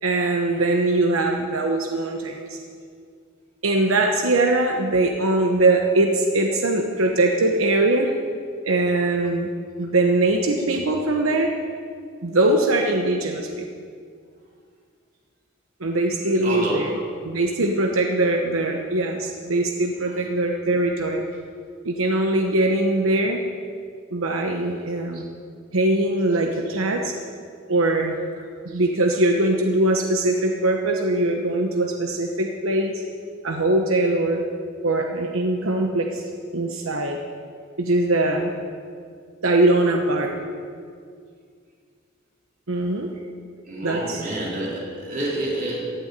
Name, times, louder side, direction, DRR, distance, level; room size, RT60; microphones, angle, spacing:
voice 1, 0.0-2.6 3.6-8.1 8.6-9.5 9.8-11.5 12.2-13.6 15.8-21.2 21.8-23.4 24.1-25.2 25.7-27.1 27.7-28.1 28.6-33.0 33.4-34.4 34.8-36.2 36.5-37.2 37.8-38.5 39.4-40.3 42.7-43.1 43.8-44.2, right 2 dB, 90° right, 2 dB, 1.1 m, -21 dB
voice 2, 16.2-16.8 43.7-45.8, right 1 dB, 40° right, -6 dB, 4.2 m, -28 dB
15.5 x 7.0 x 9.9 m, 2.2 s
head